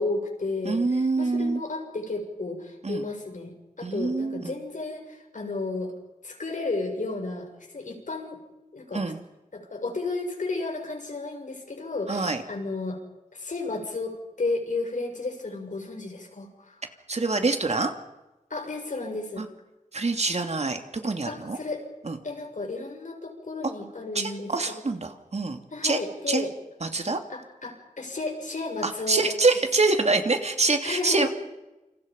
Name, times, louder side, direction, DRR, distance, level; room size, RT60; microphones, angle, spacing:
voice 1, 0.0-5.9 6.2-7.5 7.7-8.4 8.7-9.0 9.5-13.0 13.3-16.8 18.5-19.4 21.3-21.8 22.2-24.5 25.7-26.5 27.3-29.3 30.8-31.3, left 3 dB, 65° left, 3 dB, 6.7 m, -33 dB
voice 2, 0.6-1.6 2.8-3.1 3.8-4.5 8.9-9.2 12.1-12.4 17.1-17.9 19.4-19.5 19.9-21.6 22.0-22.2 24.1-26.0 26.3-26.4 26.8-27.2 28.8-31.3, right 3 dB, 55° right, 6 dB, 2.8 m, -25 dB
29.0 x 27.5 x 5.4 m, 1.0 s
wide cardioid pair, 80°, 14 cm